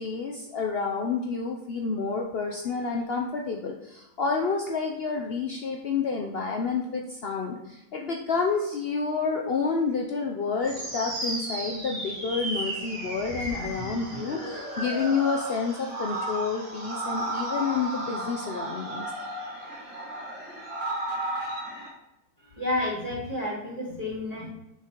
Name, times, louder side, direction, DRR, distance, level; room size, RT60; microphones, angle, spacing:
voice 1, 0.0-19.1, left 5 dB, 75° left, 1 dB, 0.5 m, -29 dB
sound 1, 10.6-21.9, right 1 dB, 40° right, 2.3 m, -34 dB
voice 2, 22.4-24.5, left 1 dB, 20° right, -6 dB, 2.8 m, -30 dB
6.7 x 4.9 x 4.5 m, 0.89 s
omnidirectional pair, 2.0 m